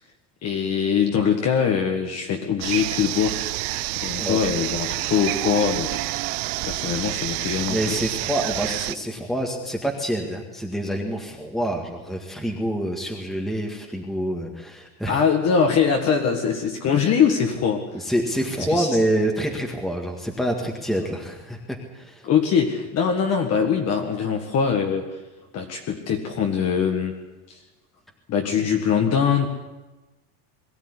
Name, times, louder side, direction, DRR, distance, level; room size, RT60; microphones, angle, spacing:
voice 1, 0.4-3.5 4.0-6.0 6.6-8.0 15.1-17.9 18.6-19.0 22.2-25.2 25.5-27.1 27.5-27.6 28.3-29.5, left 7 dB, 35° left, 3 dB, 1.8 m, -22 dB
sound 1, 2.6-8.9, right 20 dB, 75° right, 0.9 m, -28 dB
voice 2, 7.7-15.2 17.9-22.3, right 1 dB, ahead, 1 dB, 1.8 m, -27 dB
22.0 x 15.5 x 9.7 m, 1.1 s
cardioid pair, 165°, 46 cm